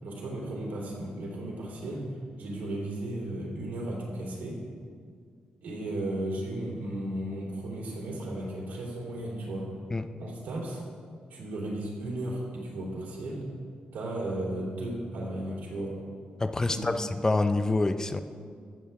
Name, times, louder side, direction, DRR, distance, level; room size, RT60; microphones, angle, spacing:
voice 1, 0.0-2.1 2.4-4.6 5.6-9.7 10.2-10.8 11.3-13.5 13.9-15.9 16.7-17.0, right 1 dB, 85° right, -3 dB, 3.1 m, -35 dB
voice 2, 16.4-18.2, left 2 dB, 20° left, 10 dB, 0.4 m, -27 dB
14.0 x 8.3 x 3.5 m, 2.1 s
cardioid pair, 105°, 3 cm